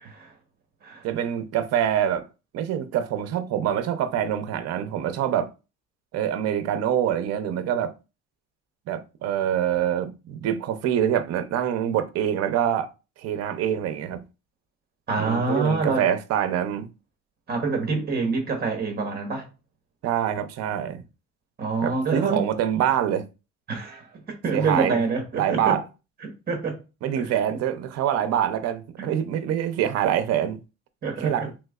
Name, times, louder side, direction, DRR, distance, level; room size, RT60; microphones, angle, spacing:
voice 1, 1.0-2.3 2.5-5.5 6.1-7.9 8.9-12.9 13.2-14.2 15.2-16.9 20.0-21.0 21.8-23.2 24.5-25.0 25.3-25.8 27.0-30.6 31.2-31.5, right 10 dB, 60° right, 0.6 m, -25 dB
voice 2, 15.1-16.1 17.5-19.5 21.6-22.4 23.7-25.8 26.2-26.8 27.1-27.4 29.0-29.1 31.0-31.5, right 4 dB, 30° right, 1.0 m, -26 dB
3.5 x 3.1 x 2.3 m
cardioid pair, 155°, 29 cm